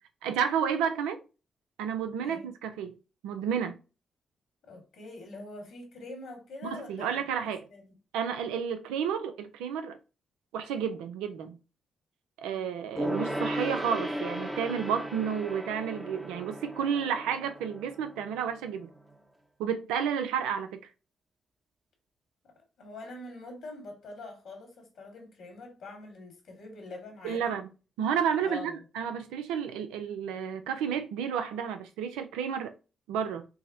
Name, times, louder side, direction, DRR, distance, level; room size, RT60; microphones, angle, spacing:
voice 1, 0.2-1.2 1.8-3.0 3.2-3.8 6.7-7.7 8.1-10.0 10.5-11.6 12.4-18.9 19.6-20.8 27.2-27.7 28.0-32.7 33.1-33.5, right 7 dB, 85° right, 0.4 m, -31 dB
voice 2, 4.6-8.0 12.5-12.7 22.4-27.6 28.4-28.8, left 2 dB, 75° left, 1.5 m, -45 dB
Gong, 13.0-18.9 19.1-19.2, equal, 15° right, 0.8 m, -36 dB
4.6 x 2.1 x 2.6 m
hypercardioid pair, 45°, 0 cm